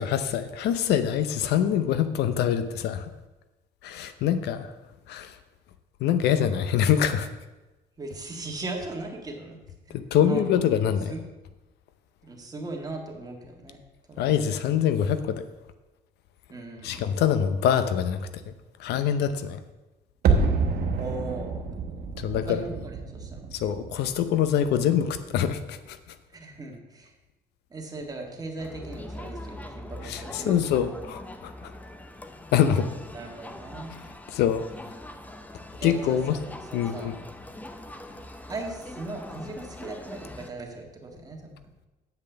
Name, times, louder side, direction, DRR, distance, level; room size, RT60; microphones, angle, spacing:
voice 1, 0.0-3.1 3.8-4.7 5.1-5.4 6.0-7.3 9.9-11.1 14.2-15.4 16.8-18.5 18.8-19.6 22.2-22.7 23.5-26.0 30.0-31.7 32.5-32.9 34.3-34.6 35.8-36.4 36.7-37.1, left 9 dB, 80° left, 11 dB, 0.7 m, -25 dB
voice 2, 8.0-9.6 9.9-10.0 10.2-10.6 11.1-11.2 12.2-13.8 14.1-14.2 16.5-17.0 21.0-21.7 22.5-23.4 26.3-27.1 27.7-30.5 33.1-34.0 35.8-36.4 36.7-37.1 38.5-41.6, right 2 dB, 20° right, 1 dB, 1.8 m, -38 dB
sound 1, 20.2-25.2 25.4-25.5, right 4 dB, 65° right, 1.2 m, -28 dB
Crowd, 28.6-40.5, left 1 dB, 10° left, 0.6 m, -42 dB
8.2 x 5.3 x 6.8 m, 1.1 s
cardioid pair, 110°, 17 cm